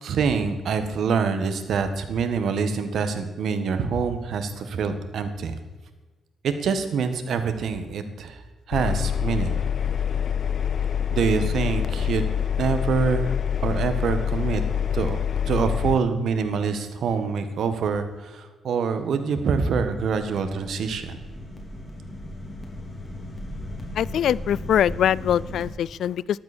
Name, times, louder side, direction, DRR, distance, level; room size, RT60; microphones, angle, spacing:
voice 1, 0.0-5.6 6.4-8.4 8.7-9.6 11.1-12.2 12.6-13.3 13.6-14.6 14.9-15.2 15.5-21.2, right 5 dB, 70° right, 9 dB, 1.6 m, -25 dB
Engine, 8.7-16.0, left 8 dB, 55° left, 0.7 m, -26 dB
sound 1, 19.6-25.7, left 1 dB, 25° left, 3.6 m, -37 dB
voice 2, 23.9-26.4, left 10 dB, 75° left, 23 dB, 0.3 m, -23 dB
14.0 x 12.0 x 4.4 m, 1.3 s
cardioid pair, 80°, 0 cm